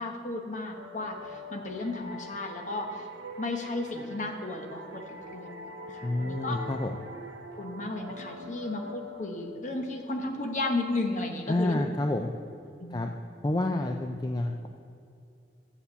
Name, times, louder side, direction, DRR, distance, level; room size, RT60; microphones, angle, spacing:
voice 1, 0.0-3.1 3.4-5.5 5.9-6.6 7.6-11.8 12.8-13.1, left 2 dB, 40° left, 4 dB, 0.9 m, -34 dB
sound 1, 0.7-10.1, left 1 dB, 85° right, 0.7 m, -43 dB
voice 2, 6.0-7.0 11.5-12.3 12.9-13.1 13.4-14.7, left 1 dB, 20° left, 4 dB, 0.3 m, -29 dB
7.1 x 7.0 x 6.8 m, 2.6 s
head